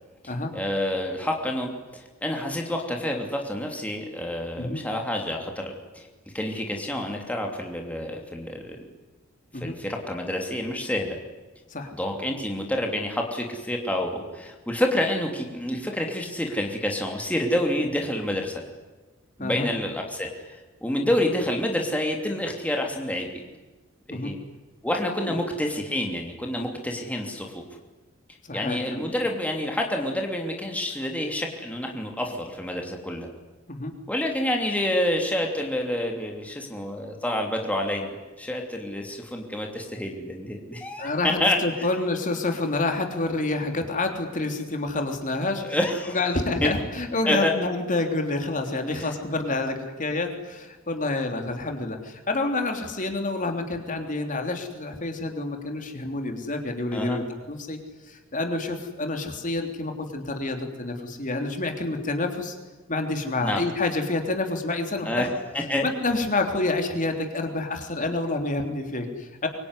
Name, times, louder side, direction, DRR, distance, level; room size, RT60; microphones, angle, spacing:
voice 1, 0.2-6.1 6.3-8.8 9.5-11.2 12.0-18.6 19.4-23.3 24.1-24.4 24.8-27.6 28.5-33.3 34.1-41.9 45.7-46.2 46.6-46.7 47.3-47.5 48.9-49.1 56.9-57.2 63.4-63.6 65.0-65.9, left 1 dB, 5° left, 2 dB, 3.0 m, -28 dB
voice 2, 28.4-29.0 33.7-33.9 41.0-45.8 46.1-57.8 58.1-62.6 62.9-65.3 65.8-69.5, left 2 dB, 40° left, 4 dB, 3.3 m, -28 dB
24.5 x 23.5 x 9.9 m, 1.2 s
head